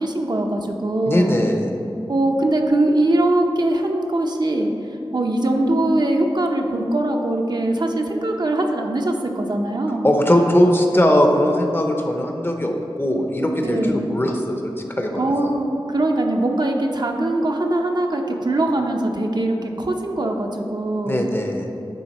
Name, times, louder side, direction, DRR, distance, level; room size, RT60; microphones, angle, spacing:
voice 1, 0.0-1.4 2.1-4.7 5.1-10.1 13.6-14.1 15.2-21.3, right 1 dB, 50° right, 2 dB, 0.6 m, -21 dB
voice 2, 1.1-1.7 10.0-15.2 21.1-21.7, equal, 25° left, 3 dB, 0.7 m, -19 dB
9.2 x 3.6 x 4.1 m, 2.9 s
wide cardioid pair, 75°, 9 cm